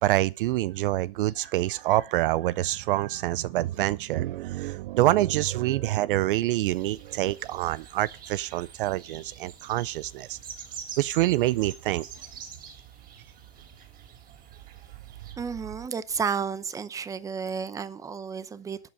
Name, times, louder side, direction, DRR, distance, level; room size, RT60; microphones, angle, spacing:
voice 1, 0.0-10.4 11.0-12.1, right 16 dB, 55° right, 0.5 m, -26 dB
sound 1, 6.7-15.3, right 7 dB, 25° right, 3.4 m, -46 dB
voice 2, 15.4-18.9, right 6 dB, 10° right, 0.7 m, -32 dB
12.5 x 8.6 x 5.4 m
hypercardioid pair, 130°, 32 cm